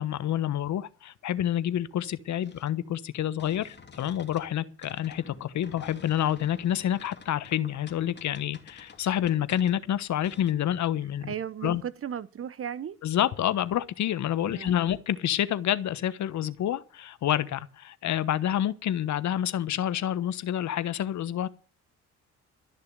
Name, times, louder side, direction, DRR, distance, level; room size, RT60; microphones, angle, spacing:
voice 1, 0.0-11.3 11.6-11.8 13.0-21.5, left 11 dB, 65° left, 1.2 m, -28 dB
sound 1, 2.4-4.5 4.8-10.5, left 5 dB, 35° left, 2.8 m, -51 dB
voice 2, 11.3-13.0 14.4-14.8, right 9 dB, 45° right, 0.9 m, -35 dB
13.5 x 6.7 x 9.3 m
cardioid pair, 90°, 30 cm